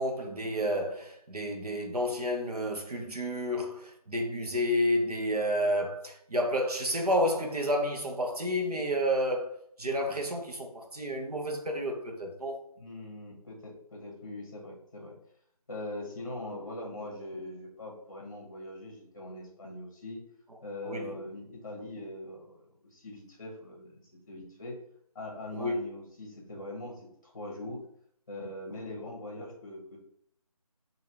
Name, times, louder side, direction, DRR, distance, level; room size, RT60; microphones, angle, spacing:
voice 1, 0.0-9.5 9.8-12.6 20.8-21.2 25.5-25.8, equal, 70° right, 1.1 m, -30 dB
voice 2, 12.8-15.1 15.7-20.2 20.6-24.8 25.1-27.8 28.3-30.0, left 1 dB, 30° left, 1.1 m, -42 dB
4.8 x 2.8 x 2.8 m
figure-of-eight pair, 175°, 20 cm